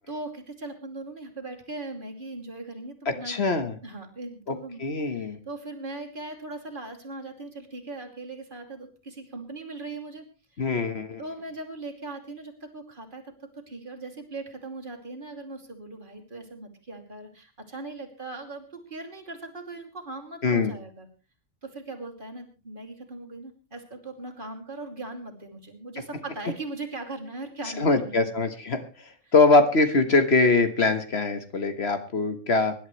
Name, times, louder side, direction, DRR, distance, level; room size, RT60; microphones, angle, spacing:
voice 1, 0.1-10.2 10.5-10.7 11.2-21.1 21.6-28.3 29.3-29.4, right 2 dB, 45° right, 2 dB, 2.8 m, -39 dB
voice 2, 3.1-3.8 4.5-4.6 4.8-5.4 10.6-11.2 20.4-20.7 27.8-28.8 29.3-32.7, left 3 dB, 60° left, 8 dB, 1.6 m, -22 dB
24.5 x 11.5 x 3.2 m, 0.32 s
omnidirectional pair, 1.3 m